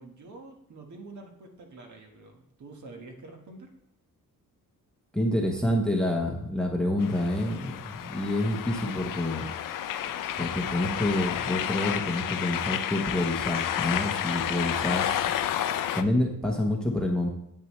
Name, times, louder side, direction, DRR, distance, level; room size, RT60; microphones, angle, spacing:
voice 1, 0.0-3.7, right 3 dB, 55° right, 3 dB, 1.5 m, -47 dB
voice 2, 5.1-9.5 10.4-15.2 15.9-17.3, left 1 dB, ahead, 1 dB, 0.9 m, -28 dB
sound 1, 7.0-16.0, left 10 dB, 65° left, 0.5 m, -31 dB
9.0 x 8.5 x 3.2 m, 0.76 s
wide cardioid pair, 175°, 35 cm